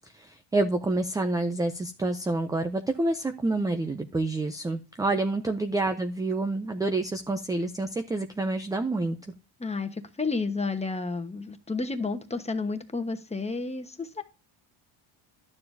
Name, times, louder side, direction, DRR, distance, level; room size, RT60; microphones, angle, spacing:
voice 1, 0.1-9.2, right 2 dB, 10° right, 7 dB, 0.3 m, -28 dB
voice 2, 9.6-14.2, left 3 dB, 15° left, 7 dB, 1.1 m, -31 dB
12.0 x 6.9 x 2.6 m, 0.32 s
cardioid pair, 120°, 49 cm